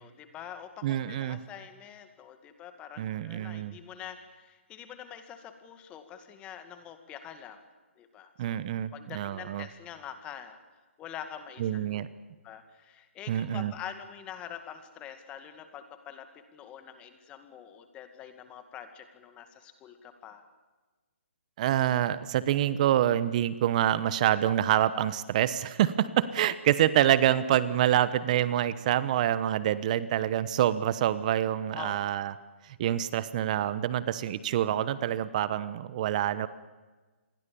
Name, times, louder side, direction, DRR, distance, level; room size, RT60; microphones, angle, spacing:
voice 1, 0.0-7.6 8.0-10.6 11.0-12.0 12.4-20.5 31.7-32.0, left 9 dB, 15° left, 9 dB, 2.2 m, -45 dB
voice 2, 0.8-1.4 3.0-3.8 8.4-9.7 11.6-12.1 13.3-13.7 21.6-32.3 32.6-36.5, right 11 dB, 35° right, 16 dB, 1.1 m, -26 dB
27.5 x 21.5 x 7.1 m, 1.3 s
hypercardioid pair, 160°, 7 cm